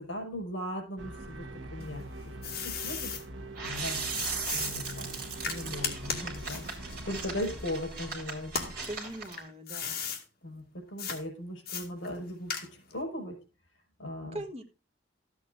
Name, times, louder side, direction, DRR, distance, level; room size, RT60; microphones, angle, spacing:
voice 1, 0.0-2.0 2.6-3.1 3.6-8.9 10.4-13.4 14.0-14.4, left 1 dB, 75° left, 2 dB, 5.4 m, -38 dB
sound 1, 1.0-7.6, right 2 dB, 65° right, 1.3 m, -43 dB
sound 2, 1.8-3.2 4.1-8.0 8.4-10.2 11.0-11.2 11.7-13.0, left 6 dB, 50° left, 2.2 m, -37 dB
sound 3, 3.6-9.4, right 4 dB, 45° right, 3.5 m, -38 dB
voice 2, 8.9-10.0 14.3-14.6, right 1 dB, 30° right, 5 dB, 1.4 m, -40 dB
13.5 x 8.2 x 3.8 m, 0.31 s
head